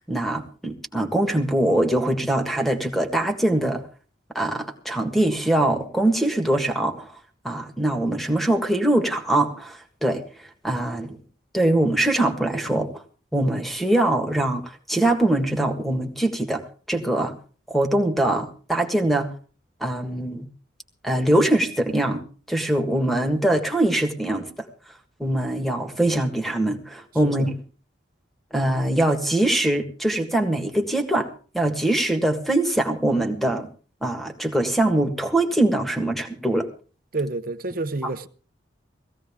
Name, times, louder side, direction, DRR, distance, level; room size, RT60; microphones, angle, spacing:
voice 1, 0.1-3.8 4.3-7.1 7.4-10.2 10.6-11.2 11.5-13.0 13.3-17.4 17.7-19.3 19.8-20.5 21.0-24.7 25.2-27.5 28.5-31.3 31.5-33.7 34.0-36.7 38.0-38.1, right 1 dB, ahead, 1.7 m, -23 dB
voice 2, 37.1-38.3, right 2 dB, 50° right, 0.8 m, -29 dB
18.0 x 15.5 x 3.6 m
head